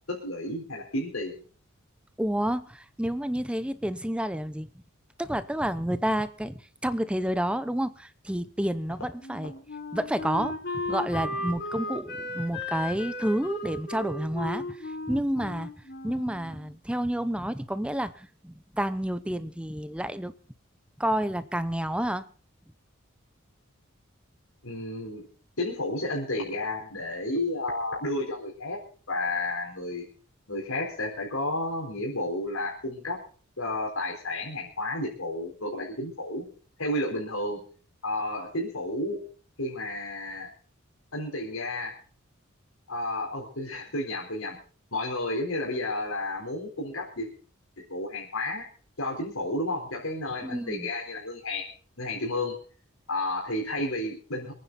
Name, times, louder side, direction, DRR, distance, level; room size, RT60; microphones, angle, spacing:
voice 1, 0.1-1.4 24.6-25.3 25.6-28.8 29.1-30.0 30.5-33.2 33.6-36.4 36.8-37.6 38.0-39.2 39.6-40.5 41.1-42.0 42.9-44.6 44.9-47.3 47.8-48.7 49.0-51.7 52.0-52.6 53.1-54.5, left 1 dB, 80° left, -2 dB, 4.4 m, -31 dB
voice 2, 2.2-4.7 5.2-9.5 9.9-15.7 16.0-20.3 21.0-22.2 50.4-50.9, right 1 dB, 5° right, 13 dB, 0.7 m, -30 dB
Wind instrument woodwind instrument, 9.2-16.7, left 2 dB, 50° left, 3.4 m, -35 dB
26.0 x 9.4 x 4.2 m, 0.39 s
head